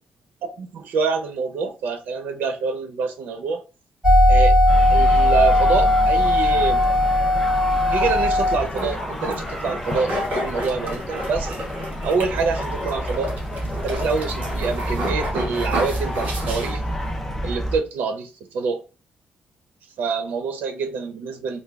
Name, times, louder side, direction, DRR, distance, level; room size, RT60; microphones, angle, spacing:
voice 1, 0.4-3.6 4.3-4.6 4.9-6.8 7.9-11.6 12.0-13.3 13.8-16.8 17.4-18.8 20.0-21.6, right 5 dB, 75° right, 0.5 m, -26 dB
sound 1, 4.0-8.6, left 1 dB, 20° right, 2.0 m, -17 dB
sound 2, 4.7-17.8, equal, 10° left, 0.4 m, -30 dB
sound 3, 8.5-17.1, equal, 55° right, 1.5 m, -31 dB
3.4 x 2.2 x 3.4 m
cardioid pair, 175°, 3 cm